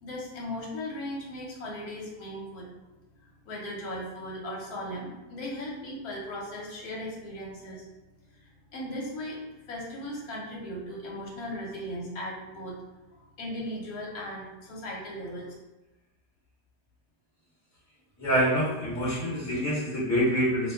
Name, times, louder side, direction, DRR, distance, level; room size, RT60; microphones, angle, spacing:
voice 1, 0.0-2.7 3.2-7.9 8.4-12.8 13.2-15.5, left 1 dB, 65° left, -3 dB, 1.1 m, -37 dB
voice 2, 18.2-20.7, equal, 15° left, -9 dB, 0.7 m, -26 dB
2.8 x 2.2 x 3.4 m, 1.1 s
omnidirectional pair, 1.9 m